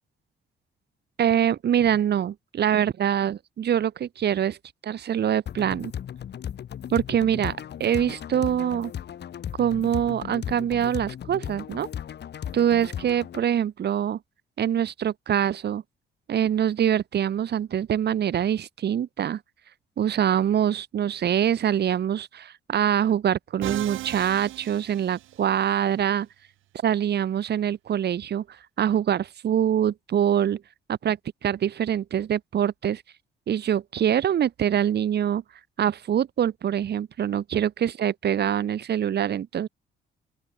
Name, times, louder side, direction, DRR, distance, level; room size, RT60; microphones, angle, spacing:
voice 1, 1.2-4.6 4.8-5.9 6.9-8.9 9.6-11.9 12.5-14.2 14.6-15.8 16.3-19.4 20.0-26.3 26.8-28.4 28.8-30.6 30.9-33.0 33.5-35.4 35.8-39.7, right 9 dB, 55° right, 1.4 m, -24 dB
sound 1, 5.5-13.5, left 9 dB, 60° left, 2.0 m, -36 dB
Musical instrument, 23.6-25.7, right 15 dB, 90° right, 3.4 m, -37 dB
open air
cardioid pair, 90°, 20 cm